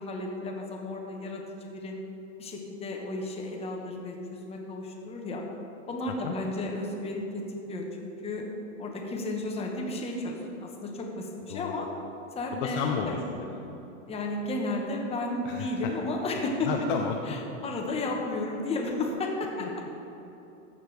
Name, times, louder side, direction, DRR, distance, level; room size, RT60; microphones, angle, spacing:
voice 1, 0.0-2.0 2.4-5.4 5.9-7.4 7.7-8.4 8.8-11.9 12.3-13.2 14.1-16.7 17.3-19.9, left 2 dB, 15° left, 1 dB, 1.0 m, -33 dB
voice 2, 12.5-13.7 15.4-15.9 16.6-17.3 19.6-19.7, left 6 dB, 40° left, 2 dB, 0.6 m, -32 dB
14.0 x 6.7 x 3.3 m, 3.0 s
hypercardioid pair, 140°, 40 cm